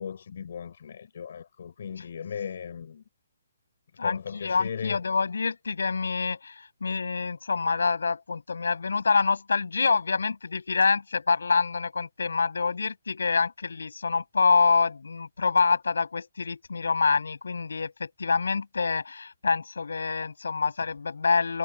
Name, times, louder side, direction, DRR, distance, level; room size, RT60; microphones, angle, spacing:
voice 1, 0.0-3.0 4.0-5.0, left 7 dB, 60° left, 5.1 m, -37 dB
voice 2, 4.0-21.6, left 4 dB, 80° left, 7.6 m, -26 dB
hypercardioid pair, 140°, 0 cm